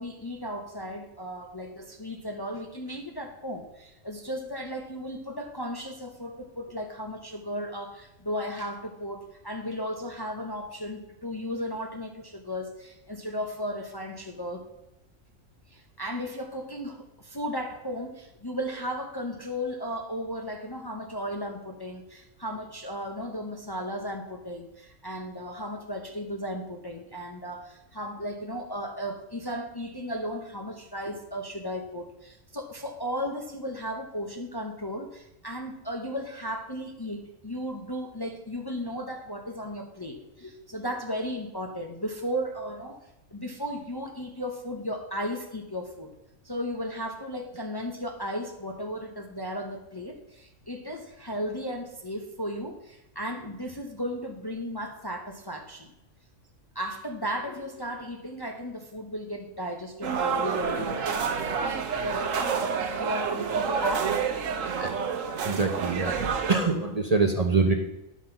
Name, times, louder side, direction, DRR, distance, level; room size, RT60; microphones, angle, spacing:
voice 1, 0.0-14.7 15.7-43.0 43.3-46.1 46.4-55.9 56.7-61.2 62.0-64.2 65.4-65.5, equal, 20° left, 3 dB, 0.8 m, -35 dB
sound 1, 60.0-66.6, right 6 dB, 80° right, 1.3 m, -28 dB
voice 2, 65.4-66.1 66.5-67.7, right 3 dB, 35° right, 4 dB, 0.9 m, -24 dB
10.5 x 5.9 x 5.7 m, 0.92 s
omnidirectional pair, 1.4 m